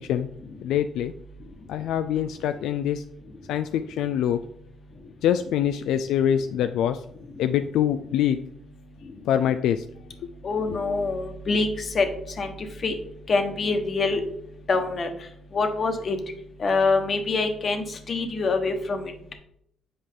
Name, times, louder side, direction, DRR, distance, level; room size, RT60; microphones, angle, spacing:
voice 1, 0.6-1.1 1.7-3.0 3.5-4.4 5.2-7.0 7.4-8.4 9.3-9.8 10.7-10.8, left 10 dB, 85° left, 9 dB, 0.3 m, -24 dB
voice 2, 10.4-11.7 11.9-12.1 12.4-12.5 12.8-12.9 13.3-14.2 14.7-15.1 15.5-16.2 16.6-19.1, left 3 dB, 45° left, 6 dB, 1.2 m, -24 dB
7.8 x 4.8 x 3.6 m, 0.71 s
cardioid pair, 90°, 0 cm